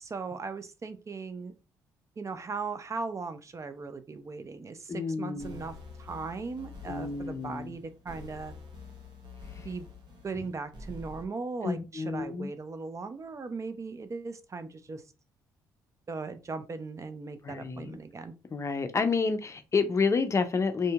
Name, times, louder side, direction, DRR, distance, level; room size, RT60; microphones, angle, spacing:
voice 1, 0.0-1.5 2.2-8.5 9.6-9.9 10.2-15.0 16.1-18.3, right 4 dB, 35° right, 0.5 m, -38 dB
voice 2, 4.9-5.6 6.9-7.7 9.5-9.7 11.6-12.5 17.4-18.0 18.5-20.9, left 4 dB, 35° left, 0.5 m, -29 dB
sound 1, 5.3-11.3, left 4 dB, 55° right, 1.0 m, -47 dB
2.7 x 2.6 x 2.3 m
supercardioid pair, 60°, 9 cm